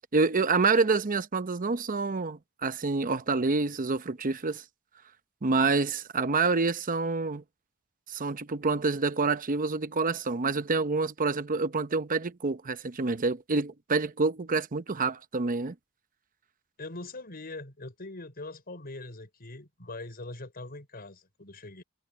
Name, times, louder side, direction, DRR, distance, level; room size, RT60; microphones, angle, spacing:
voice 1, 0.1-4.6 5.4-7.4 8.1-15.7, right 4 dB, 40° right, 0.8 m, -27 dB
voice 2, 16.8-21.8, left 2 dB, 45° left, 5.5 m, -42 dB
head